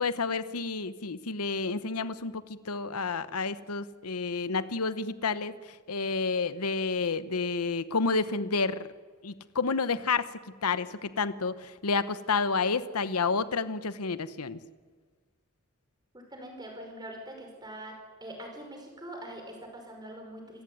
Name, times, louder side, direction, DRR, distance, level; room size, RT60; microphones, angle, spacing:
voice 1, 0.0-8.9 9.2-10.3 10.6-14.6, left 4 dB, 90° left, 14 dB, 1.0 m, -30 dB
voice 2, 16.1-18.0 18.2-20.6, right 1 dB, 20° right, 2 dB, 5.6 m, -43 dB
27.0 x 15.5 x 9.4 m, 1.4 s
head